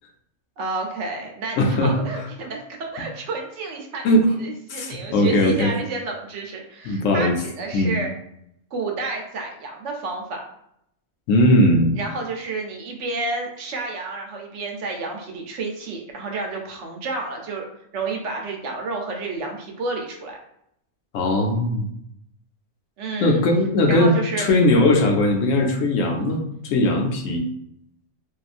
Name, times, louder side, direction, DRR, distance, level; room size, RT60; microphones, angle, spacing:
voice 1, 0.6-4.1 4.4-8.1 8.7-10.4 12.0-17.7 17.9-20.4 23.0-23.4 23.9-24.5, right 3 dB, 70° right, 2 dB, 0.9 m, -30 dB
voice 2, 1.6-2.3 4.0-4.3 4.7-5.7 6.8-7.4 7.7-8.0 11.3-12.0 21.1-21.9 23.2-27.4, left 1 dB, 80° left, 3 dB, 1.0 m, -19 dB
2.8 x 2.4 x 2.4 m, 0.76 s
omnidirectional pair, 1.3 m